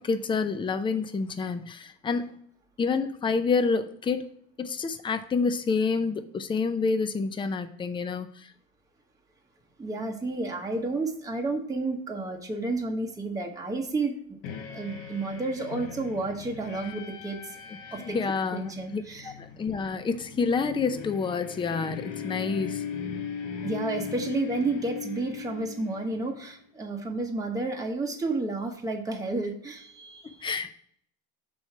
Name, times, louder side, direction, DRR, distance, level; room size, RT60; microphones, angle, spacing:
voice 1, 0.0-2.3 2.8-4.2 4.6-8.5 17.9-22.8 30.2-30.7, left 4 dB, 15° left, 0.5 m, -28 dB
voice 2, 9.8-14.4 14.7-17.4 17.9-18.2 18.5-19.3 23.6-30.5, right 2 dB, 10° right, 1.0 m, -31 dB
sound 1, 14.4-26.5, left 7 dB, 65° left, 1.2 m, -39 dB
6.3 x 4.4 x 5.8 m
supercardioid pair, 120°, 30 cm